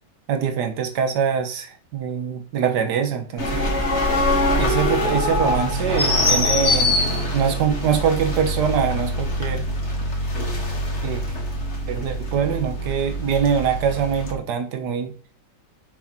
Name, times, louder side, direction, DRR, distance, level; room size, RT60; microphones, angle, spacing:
voice 1, 0.3-3.7 4.6-6.9 7.3-9.7 11.0-11.2 11.9-15.1, right 7 dB, 70° right, 8 dB, 1.5 m, -23 dB
sound 1, 3.4-14.3, left 1 dB, 40° left, 1.8 m, -23 dB
7.1 x 6.2 x 2.9 m, 0.41 s
omnidirectional pair, 1.9 m